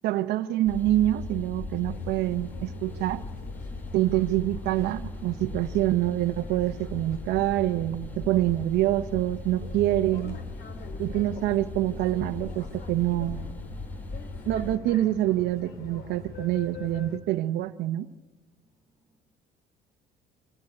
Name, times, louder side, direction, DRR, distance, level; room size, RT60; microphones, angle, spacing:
voice 1, 0.0-3.2 3.9-10.4 11.0-13.4 14.5-18.1, right 15 dB, 85° right, 8 dB, 0.8 m, -26 dB
sound 1, 0.7-14.8, left 2 dB, 10° left, 1.2 m, -38 dB
sound 2, 1.8-17.2, left 5 dB, 70° left, 2.6 m, -46 dB
voice 2, 18.5-19.2, right 2 dB, 25° right, 3 dB, 3.9 m, -72 dB
25.0 x 15.0 x 9.7 m, 1.3 s
cardioid pair, 110°, 17 cm